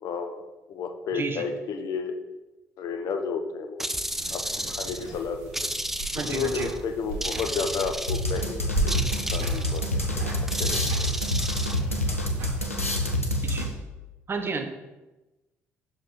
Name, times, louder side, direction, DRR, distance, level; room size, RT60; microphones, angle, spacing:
voice 1, 0.0-2.2 2.8-3.9 4.3-5.7 6.3-10.3 10.6-11.2, left 5 dB, 55° left, 6 dB, 0.7 m, -32 dB
sound 1, 3.8-5.1 5.5-6.8 7.2-8.4 8.9-9.8 10.5-11.8, right 1 dB, 5° right, 0.4 m, -33 dB
sound 2, 4.1-12.8, right 2 dB, 70° right, 1.5 m, -37 dB
voice 2, 6.1-6.7 13.4-13.7 14.3-14.7, right 4 dB, 30° right, 6 dB, 0.9 m, -31 dB
sound 3, 8.1-13.9, left 1 dB, 90° left, 0.5 m, -27 dB
6.2 x 4.8 x 4.3 m, 1.1 s
figure-of-eight pair, 45°, 7 cm